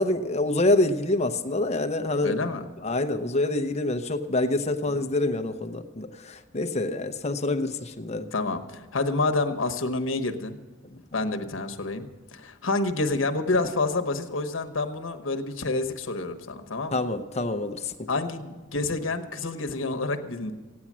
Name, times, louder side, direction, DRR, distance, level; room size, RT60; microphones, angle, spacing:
voice 1, 0.0-2.5 2.8-8.3 10.9-11.0 16.9-18.1, left 2 dB, 35° left, 7 dB, 0.8 m, -26 dB
voice 2, 2.2-2.6 4.9-5.0 8.3-10.6 11.1-17.0 18.1-20.5, left 3 dB, 85° left, 7 dB, 1.1 m, -28 dB
16.0 x 9.6 x 7.4 m, 1.3 s
head